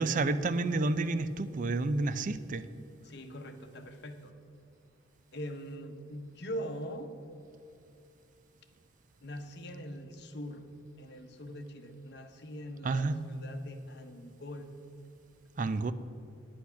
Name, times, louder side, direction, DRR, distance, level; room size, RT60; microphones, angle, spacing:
voice 1, 0.0-2.7 12.8-13.2 15.6-15.9, right 3 dB, 45° right, 13 dB, 0.4 m, -30 dB
voice 2, 3.0-4.4 5.3-7.2 9.2-14.8, equal, 60° left, 7 dB, 1.0 m, -42 dB
9.9 x 8.3 x 5.8 m, 2.6 s
head